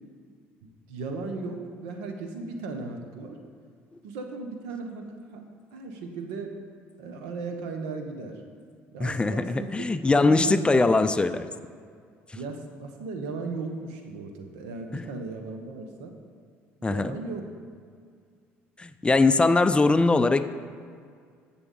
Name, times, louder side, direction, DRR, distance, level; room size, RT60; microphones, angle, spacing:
voice 1, 0.6-3.4 4.0-5.0 5.3-5.4 5.7-6.6 7.0-8.4 8.9-10.6 12.3-16.2 16.9-17.5, right 4 dB, 85° right, 4 dB, 0.9 m, -36 dB
voice 2, 9.0-11.5 14.9-15.0 16.8-17.2 18.8-20.4, left 3 dB, 15° left, 11 dB, 0.4 m, -21 dB
8.0 x 6.9 x 3.8 m, 2.1 s
supercardioid pair, 75°, 6 cm